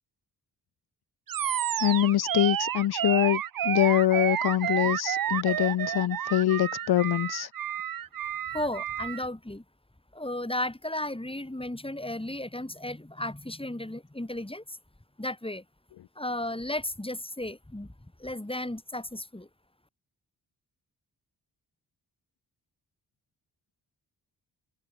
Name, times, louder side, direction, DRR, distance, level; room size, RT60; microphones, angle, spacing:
Animal, 1.3-9.2, right 10 dB, 55° right, 0.6 m, -30 dB
voice 1, 1.8-7.5, left 13 dB, 60° left, 0.6 m, -24 dB
voice 2, 8.5-9.6 10.1-14.8 15.2-15.6 16.2-17.9 18.2-19.5, left 1 dB, 10° left, 4.3 m, -34 dB
cardioid pair, 45°, 43 cm